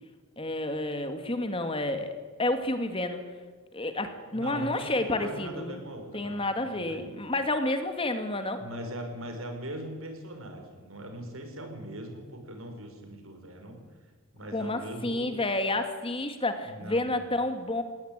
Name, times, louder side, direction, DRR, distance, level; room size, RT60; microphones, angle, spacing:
voice 1, 0.4-2.1 2.4-3.2 3.7-5.8 6.1-8.6 14.5-17.8, left 2 dB, 25° left, 7 dB, 2.1 m, -30 dB
voice 2, 4.3-7.1 8.6-13.8 14.3-15.3 16.6-17.1, right 1 dB, 80° right, 4 dB, 5.7 m, -40 dB
21.0 x 18.5 x 9.0 m, 1.4 s
head